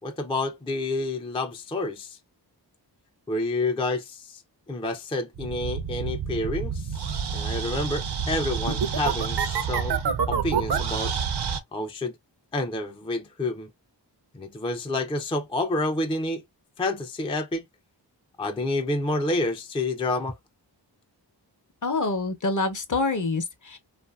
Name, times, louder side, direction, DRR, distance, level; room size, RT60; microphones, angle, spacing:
voice 1, 0.0-2.2 3.3-4.4 4.7-10.0 10.3-11.1 11.7-12.1 12.5-13.7 14.3-16.4 16.8-17.6 18.4-20.4, left 2 dB, 15° left, 0.4 m, -29 dB
sound 1, 5.3-11.6, right 6 dB, 65° right, 0.6 m, -28 dB
voice 2, 21.8-23.8, left 3 dB, 45° left, 0.7 m, -26 dB
2.6 x 2.5 x 2.3 m
wide cardioid pair, 55°, 43 cm